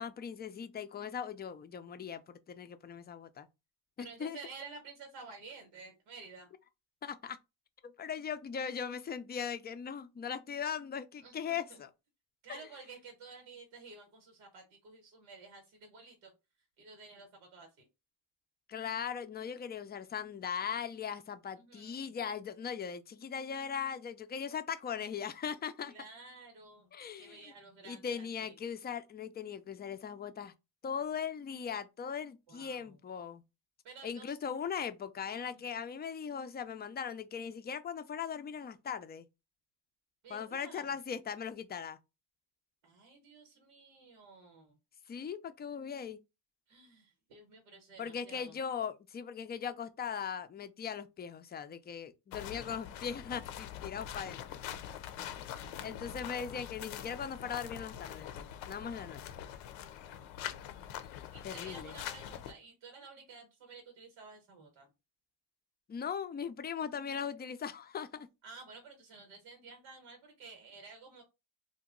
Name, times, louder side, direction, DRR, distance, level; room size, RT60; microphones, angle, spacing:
voice 1, 0.0-3.5 4.0-4.4 7.0-7.4 7.8-11.9 12.5-12.6 18.7-25.9 26.9-27.5 27.8-30.5 30.8-33.4 34.0-39.2 40.3-42.0 45.1-46.2 48.0-54.6 55.8-59.2 61.4-61.9 65.9-68.3, left 7 dB, 25° left, 0.3 m, -39 dB
voice 2, 4.0-6.5 11.2-11.8 12.4-16.3 16.8-17.9 21.6-22.2 25.9-28.6 32.5-33.0 33.8-34.3 35.4-35.7 40.2-40.9 42.8-44.8 46.7-48.6 55.1-56.2 60.1-60.2 61.3-64.9 68.4-71.2, right 4 dB, 85° right, 1.1 m, -52 dB
sound 1, 52.3-62.5, left 10 dB, 90° left, 0.6 m, -44 dB
2.8 x 2.2 x 3.6 m
cardioid pair, 80°, 46 cm